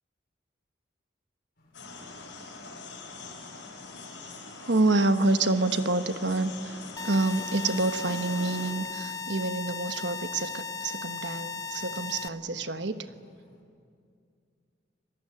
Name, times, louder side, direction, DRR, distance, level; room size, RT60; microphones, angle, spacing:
sound 1, 1.6-13.6, equal, 55° left, 7.1 m, -58 dB
sound 2, 1.7-8.7, left 3 dB, 85° left, 6.0 m, -43 dB
voice 1, 4.6-13.0, right 2 dB, 70° right, 9 dB, 1.2 m, -27 dB
sound 3, 7.0-12.3, left 5 dB, 20° left, 0.6 m, -36 dB
26.5 x 19.5 x 9.8 m, 2.3 s
head